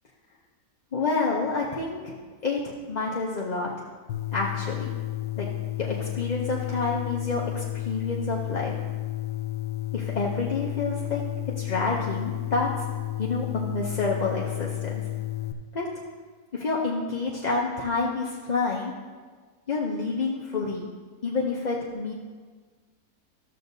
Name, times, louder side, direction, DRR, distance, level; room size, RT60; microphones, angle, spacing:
voice 1, 0.9-2.2 2.4-3.7 4.3-4.9 5.4-5.5 5.8-8.7 9.9-11.2 11.6-12.7 13.2-15.1 15.7-15.9 16.5-18.9 19.7-20.9 21.2-22.1, left 3 dB, 40° left, -3 dB, 0.6 m, -28 dB
sound 1, 4.1-15.5, left 16 dB, 90° left, 1.1 m, -32 dB
13.0 x 7.6 x 2.7 m, 1.5 s
omnidirectional pair, 1.6 m